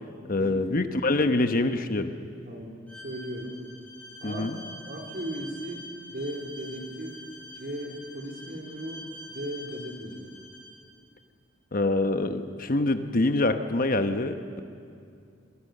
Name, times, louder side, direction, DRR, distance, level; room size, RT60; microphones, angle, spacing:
voice 1, 0.3-2.1 4.2-4.6 11.7-14.6, left 2 dB, 45° left, 8 dB, 1.0 m, -25 dB
voice 2, 2.4-2.8 3.0-3.6 4.2-4.5 4.9-7.1 7.5-9.0 9.3-10.3, right 1 dB, 50° right, 2 dB, 3.9 m, -37 dB
Bowed string instrument, 2.9-10.8, left 1 dB, 10° left, 7.1 m, -46 dB
28.0 x 22.5 x 6.7 m, 2.4 s
head